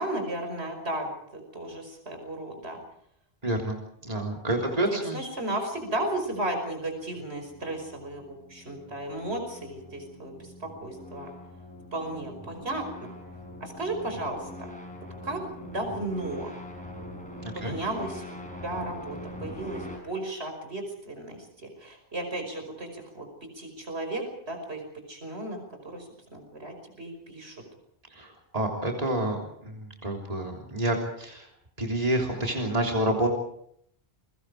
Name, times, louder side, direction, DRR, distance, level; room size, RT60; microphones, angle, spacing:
voice 1, 0.0-2.8 4.5-11.3 11.9-13.1 13.6-14.5 15.2-16.5 17.5-18.3 18.5-23.3 23.6-24.8 25.1-27.6, right 1 dB, 90° right, 4 dB, 5.7 m, -34 dB
voice 2, 3.4-3.8 4.0-5.3 17.4-17.7 28.1-31.5 31.8-33.3, right 1 dB, 35° right, 1 dB, 3.6 m, -28 dB
sound 1, 5.5-20.0, left 1 dB, 5° left, 6.5 m, -43 dB
29.5 x 23.5 x 4.9 m, 0.69 s
omnidirectional pair, 1.1 m